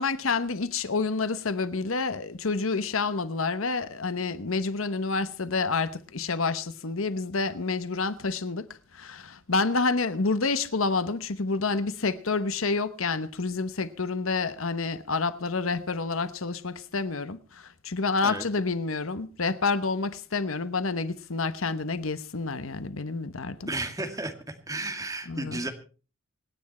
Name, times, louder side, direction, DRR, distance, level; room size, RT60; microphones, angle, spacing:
voice 1, 0.0-8.6 8.9-23.7 25.3-25.6, left 4 dB, 80° left, 1.1 m, -28 dB
voice 2, 23.7-24.3 24.7-25.7, right 2 dB, 15° right, 2.2 m, -32 dB
26.0 x 9.9 x 4.4 m
head